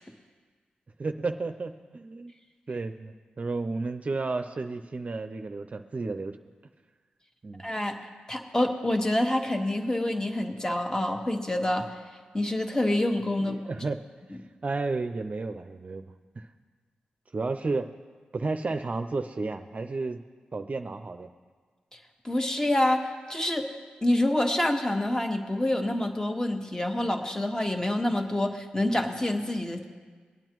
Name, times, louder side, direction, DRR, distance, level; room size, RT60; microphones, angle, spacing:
voice 1, 1.0-2.3 2.7-6.4 7.4-7.7 13.4-14.0 14.6-16.0 16.4-16.5 17.3-17.9 18.3-20.2 20.5-21.3, right 3 dB, 45° right, 7 dB, 0.6 m, -32 dB
voice 2, 7.6-8.0 8.3-11.9 12.3-13.6 22.2-23.7 24.0-29.9, left 1 dB, 20° left, 4 dB, 1.5 m, -27 dB
22.5 x 8.9 x 3.1 m, 1.5 s
supercardioid pair, 40°, 3 cm